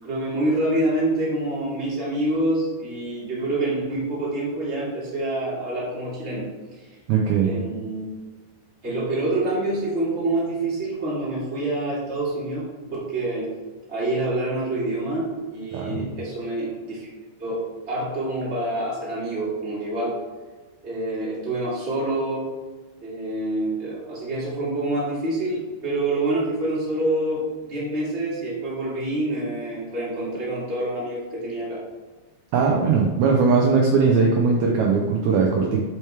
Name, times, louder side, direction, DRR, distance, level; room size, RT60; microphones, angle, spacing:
voice 1, 0.0-6.4 7.4-8.1 8.8-12.6 12.9-13.5 13.9-17.1 17.4-17.6 17.9-20.1 20.8-22.5 23.0-31.8, right 1 dB, 25° right, -8 dB, 1.9 m, -26 dB
voice 2, 7.1-7.5 15.7-16.0 32.5-35.8, right 5 dB, 80° right, 0 dB, 1.7 m, -19 dB
7.6 x 4.7 x 3.4 m, 1.2 s
omnidirectional pair, 4.1 m